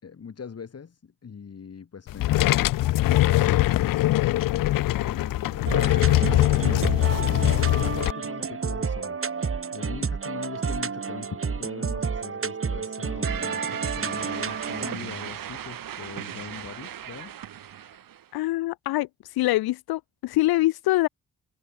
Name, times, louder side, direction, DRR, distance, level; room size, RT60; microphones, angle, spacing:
voice 1, 0.0-2.8 3.1-4.4 4.9-9.2 9.7-17.3, left 6 dB, 45° left, 2.8 m, -40 dB
sound 1, 2.1-8.1, left 15 dB, 65° left, 0.6 m, -22 dB
sound 2, 5.7-14.9, right 5 dB, 35° right, 2.6 m, -30 dB
sound 3, 13.2-18.3, right 10 dB, 65° right, 3.0 m, -37 dB
voice 2, 18.3-19.1 19.3-21.1, left 17 dB, 90° left, 1.1 m, -24 dB
cardioid pair, 70°, 36 cm